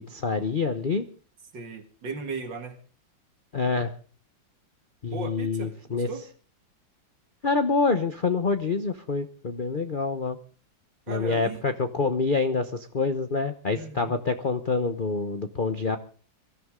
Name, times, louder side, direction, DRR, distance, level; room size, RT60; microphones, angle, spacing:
voice 1, 0.1-1.0 3.5-3.9 5.0-6.1 7.4-10.4 11.1-16.0, left 4 dB, 40° left, 8 dB, 0.8 m, -26 dB
voice 2, 1.5-2.8 5.0-6.2 11.1-11.6 13.7-14.1, right 4 dB, 70° right, 7 dB, 2.7 m, -37 dB
23.5 x 14.0 x 3.7 m, 0.40 s
omnidirectional pair, 2.1 m